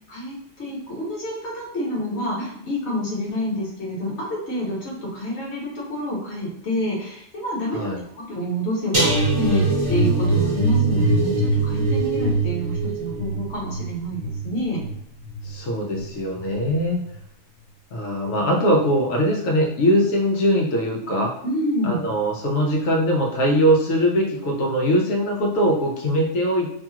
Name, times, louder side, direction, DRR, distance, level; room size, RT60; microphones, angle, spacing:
voice 1, 0.0-14.9 21.4-22.1, equal, 60° left, -4 dB, 1.3 m, -28 dB
voice 2, 7.7-8.0 15.4-17.0 17.9-21.3 21.8-26.8, equal, 90° left, 0 dB, 1.1 m, -21 dB
sound 1, 8.9-16.0 16.4-16.7 17.0-17.1, right 2 dB, 35° right, 0.6 m, -23 dB
2.8 x 2.3 x 2.8 m, 0.77 s
omnidirectional pair, 1.3 m